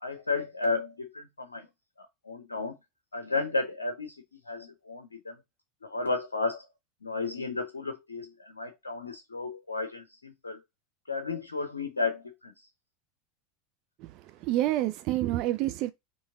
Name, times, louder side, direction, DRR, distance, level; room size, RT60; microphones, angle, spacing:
voice 1, 0.0-1.7 2.0-2.8 3.1-4.2 4.5-5.4 5.8-6.7 7.0-10.6 11.1-12.5, left 3 dB, 85° left, 0.6 m, -33 dB
voice 2, 14.4-15.9, right 15 dB, 50° right, 0.4 m, -28 dB
4.4 x 3.1 x 3.6 m
figure-of-eight pair, 80°, 0 cm